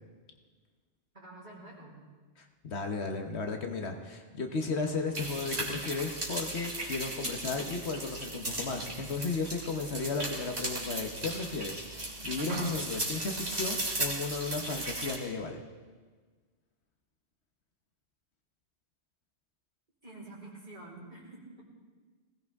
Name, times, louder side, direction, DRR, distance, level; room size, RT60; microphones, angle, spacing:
voice 1, 1.1-2.0 20.0-21.6, right 2 dB, 40° right, -5 dB, 4.7 m, -48 dB
voice 2, 2.4-15.6, left 4 dB, 70° left, 4 dB, 1.4 m, -35 dB
sound 1, 5.1-15.2, right 1 dB, 65° right, 3.0 m, -36 dB
20.0 x 17.0 x 3.6 m, 1.4 s
omnidirectional pair, 1.2 m